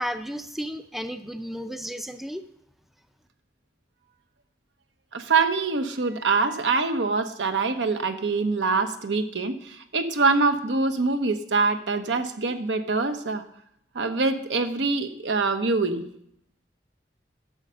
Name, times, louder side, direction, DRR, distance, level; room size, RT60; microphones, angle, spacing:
voice 1, 0.0-2.4, equal, ahead, 9 dB, 0.4 m, -33 dB
voice 2, 5.1-13.4 13.9-16.0, right 4 dB, 80° right, 7 dB, 1.0 m, -24 dB
11.0 x 6.7 x 6.3 m, 0.72 s
head